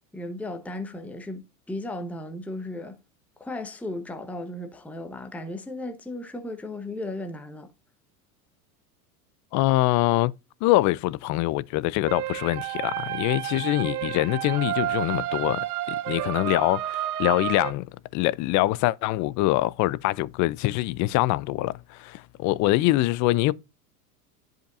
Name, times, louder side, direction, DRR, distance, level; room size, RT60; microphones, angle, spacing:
voice 1, 0.1-3.0 3.4-7.7, left 1 dB, 5° left, 0.9 m, -35 dB
voice 2, 9.5-10.3 10.6-17.8 18.1-23.5, left 17 dB, 40° left, 0.5 m, -24 dB
sound 1, 12.1-17.7, right 13 dB, 70° right, 0.9 m, -30 dB
10.5 x 5.1 x 2.5 m
hypercardioid pair, 100°, 46 cm